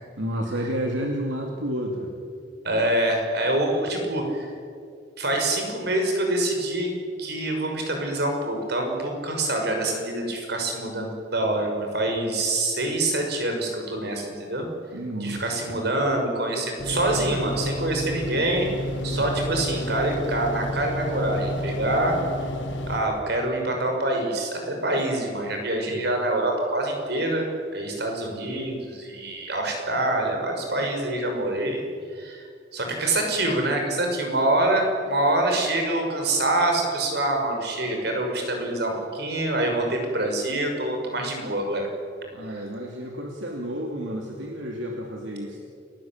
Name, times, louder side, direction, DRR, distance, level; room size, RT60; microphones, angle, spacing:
voice 1, 0.2-2.1 12.3-12.4 14.9-15.8 19.0-19.3 25.9-26.0 42.3-45.6, equal, 80° right, 1 dB, 2.9 m, -31 dB
voice 2, 2.6-4.5 5.2-6.9 7.2-14.7 15.2-18.7 19.0-22.2 22.9-31.8 32.1-32.5 32.7-41.9 42.5-42.6, right 1 dB, 60° right, 2 dB, 6.1 m, -25 dB
sound 1, 16.8-23.0, equal, 85° left, 4.1 m, -30 dB
29.0 x 19.0 x 9.0 m, 2.3 s
head